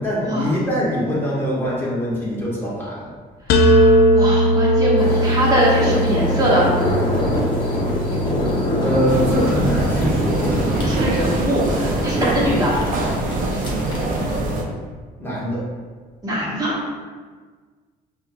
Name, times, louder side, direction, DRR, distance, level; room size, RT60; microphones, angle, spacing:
voice 1, 0.0-3.1 8.8-11.2 12.2-12.3 15.2-15.6, equal, 10° left, -8 dB, 1.3 m, -23 dB
sound 1, 3.5-9.3, equal, 70° left, 0.4 m, -19 dB
voice 2, 3.5-6.7 10.8-12.7 16.2-16.8, right 1 dB, 20° right, -6 dB, 1.2 m, -22 dB
sound 2, 5.0-14.4, left 1 dB, 30° left, 0.9 m, -25 dB
sound 3, 9.1-14.6, right 2 dB, 55° right, 0.5 m, -24 dB
5.1 x 2.6 x 2.2 m, 1.5 s
cardioid pair, 110°, 17 cm